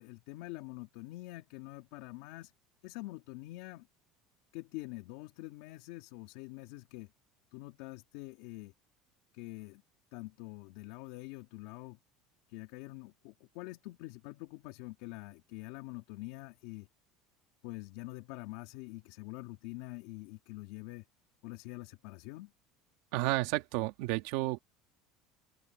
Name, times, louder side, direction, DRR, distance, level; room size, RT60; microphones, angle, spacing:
voice 1, 0.0-2.5 2.8-3.9 4.5-7.1 7.5-8.7 9.3-9.8 10.1-12.0 12.5-16.9 17.6-21.0 21.4-22.5, left 20 dB, 75° left, 2.6 m, -45 dB
voice 2, 23.1-24.6, right 20 dB, 75° right, 2.4 m, -31 dB
open air
supercardioid pair, 125°, 0 cm